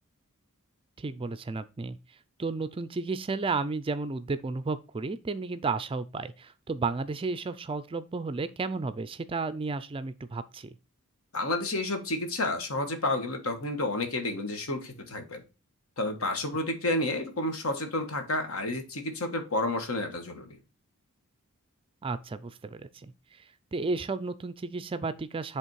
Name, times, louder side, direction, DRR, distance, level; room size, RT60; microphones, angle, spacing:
voice 1, 1.0-2.0 2.4-10.7 22.0-23.1 23.7-25.6, right 3 dB, 25° right, 0.4 m, -33 dB
voice 2, 11.3-15.4 16.0-20.6, left 2 dB, 70° left, 1.3 m, -30 dB
8.1 x 3.5 x 4.6 m
head